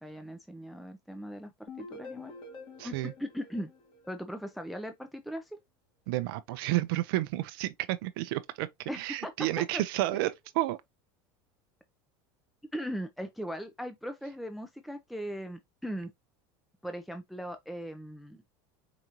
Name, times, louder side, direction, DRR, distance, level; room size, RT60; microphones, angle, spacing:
voice 1, 0.0-2.3 2.8-2.9 3.2-3.7 4.1-5.6 8.9-9.8 12.7-16.1 16.8-18.4, equal, ahead, 0.4 m, -39 dB
sound 1, 1.7-4.6, left 3 dB, 40° left, 1.5 m, -47 dB
voice 2, 2.8-3.1 6.1-10.8, right 16 dB, 75° right, 0.5 m, -31 dB
4.8 x 2.6 x 2.9 m
supercardioid pair, 125°, 12 cm